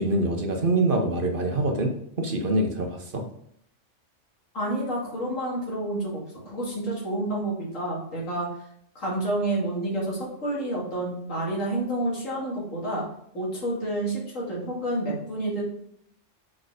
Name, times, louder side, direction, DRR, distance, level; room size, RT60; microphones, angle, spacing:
voice 1, 0.0-1.9 2.2-3.2, right 2 dB, 45° right, 3 dB, 1.0 m, -25 dB
voice 2, 4.5-8.5 8.9-13.0 13.3-15.6, right 1 dB, 85° left, -5 dB, 3.0 m, -29 dB
6.0 x 4.5 x 4.9 m, 0.71 s
omnidirectional pair, 1.3 m